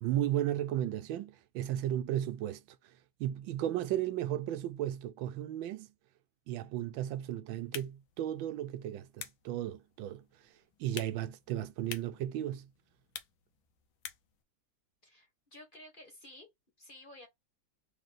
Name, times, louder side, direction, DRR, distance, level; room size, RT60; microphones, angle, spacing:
voice 1, 0.0-2.6 3.2-5.9 6.5-10.2 10.8-12.7, right 12 dB, 90° right, 1.4 m, -34 dB
sound 1, 7.5-14.4, left 9 dB, 85° left, 1.6 m, -50 dB
voice 2, 15.0-16.5 16.8-17.3, left 1 dB, 30° left, 1.4 m, -53 dB
3.9 x 2.9 x 3.9 m
omnidirectional pair, 2.1 m